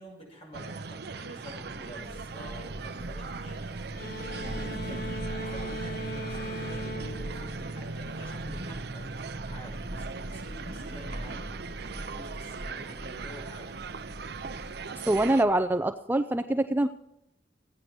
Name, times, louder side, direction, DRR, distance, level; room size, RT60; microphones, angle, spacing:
voice 1, 0.0-9.1 9.4-13.8, equal, 35° left, -2 dB, 7.3 m, -48 dB
sound 1, 0.5-15.4, right 4 dB, 65° right, 0.6 m, -39 dB
Thunder / Rain, 1.5-15.6, right 1 dB, 40° right, 1.2 m, -43 dB
sound 2, 4.0-8.4, right 1 dB, 55° left, 1.0 m, -39 dB
voice 2, 15.1-16.9, right 1 dB, 10° right, 9 dB, 0.4 m, -24 dB
16.0 x 9.4 x 6.0 m, 0.83 s
head